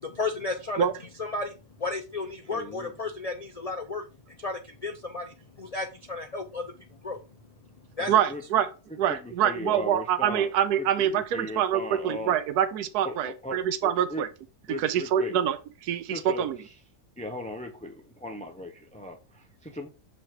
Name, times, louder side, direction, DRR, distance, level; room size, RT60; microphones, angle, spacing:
voice 1, 0.0-0.8 1.2-4.0 4.4-7.2 8.0-8.1, left 3 dB, 80° left, 0.3 m, -33 dB
voice 2, 2.5-2.9 8.0-8.4 9.1-10.5 10.8-12.4 13.0-14.2 14.7-15.3 16.1-16.5 17.2-19.9, left 1 dB, 10° left, 0.4 m, -38 dB
voice 3, 8.1-8.7 9.0-14.3 14.7-16.6, right 9 dB, 90° right, 1.2 m, -25 dB
7.2 x 3.3 x 4.4 m
omnidirectional pair, 1.6 m